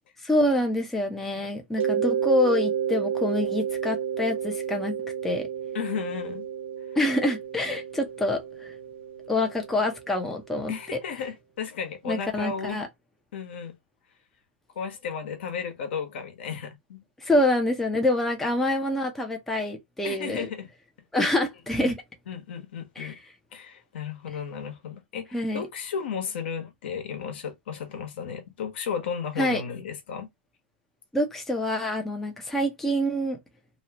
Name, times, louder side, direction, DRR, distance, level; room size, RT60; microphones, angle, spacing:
voice 1, 0.2-4.9 5.2-5.5 7.0-8.7 9.3-10.7 12.1-12.9 17.2-20.5 21.1-21.9 23.0-23.1 25.3-25.6 29.4-29.6 31.1-33.4, left 1 dB, 5° left, 0.7 m, -26 dB
Mallet percussion, 1.8-10.4, right 8 dB, 90° right, 1.0 m, -31 dB
voice 2, 5.7-6.5 10.7-12.8 13.3-13.7 14.7-17.0 20.0-20.7 21.8-21.9 22.3-23.2 23.5-30.3, left 6 dB, 65° left, 1.2 m, -34 dB
2.9 x 2.3 x 2.8 m
hypercardioid pair, 135°, 6 cm